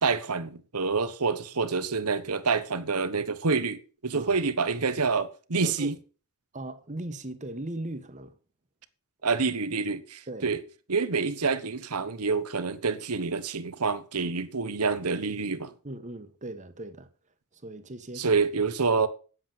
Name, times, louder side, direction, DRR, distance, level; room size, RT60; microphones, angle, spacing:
voice 1, 0.0-5.9 9.2-10.6 10.9-15.7 18.2-19.1, right 4 dB, 85° right, 1.2 m, -27 dB
voice 2, 5.6-6.0 6.5-8.4 10.3-10.6 15.8-17.1 17.5-18.4, right 1 dB, 35° right, 1.2 m, -38 dB
9.6 x 7.9 x 7.4 m
head